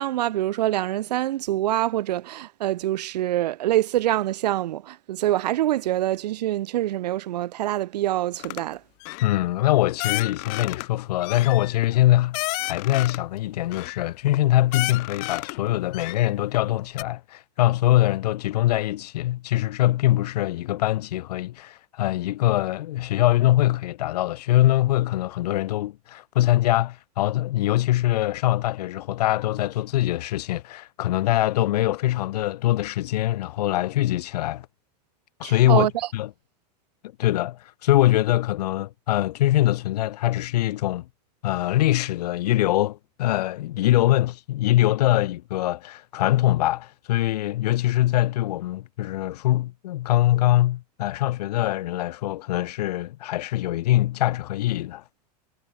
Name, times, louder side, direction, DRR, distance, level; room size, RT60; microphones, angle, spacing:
voice 1, 0.0-8.8 35.4-35.9, right 14 dB, 80° right, 1.9 m, -25 dB
sound 1, 8.4-8.6 9.0-9.4 10.0-10.9 11.2-13.3 13.7-14.4 14.7-15.6 15.9-16.6 17.0-17.1, left 40 dB or more, 45° left, 2.6 m, -32 dB
voice 2, 9.2-12.4 12.7-34.7 35.4-35.9 36.1-36.3 37.2-41.1 41.4-55.0, left 15 dB, 70° left, 5.7 m, -23 dB
supercardioid pair, 155°, 21 cm